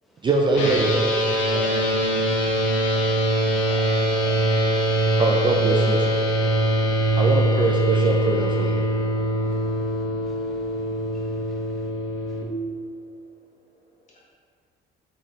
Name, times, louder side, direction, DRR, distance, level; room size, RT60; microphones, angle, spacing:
voice 1, 0.2-0.9 5.2-6.2 7.2-8.9, right 3 dB, 25° right, -1 dB, 0.4 m, -23 dB
sound 1, 0.5-12.4, right 1 dB, 75° left, 0.8 m, -22 dB
voice 2, 1.4-4.5 9.8-9.9 14.1-14.2, left 1 dB, 40° left, -6 dB, 1.4 m, -41 dB
voice 3, 6.8-7.2 9.4-11.9 12.3-12.4, equal, ahead, -5 dB, 0.9 m, -59 dB
4.0 x 3.7 x 3.2 m, 2.2 s
cardioid pair, 95°, 20 cm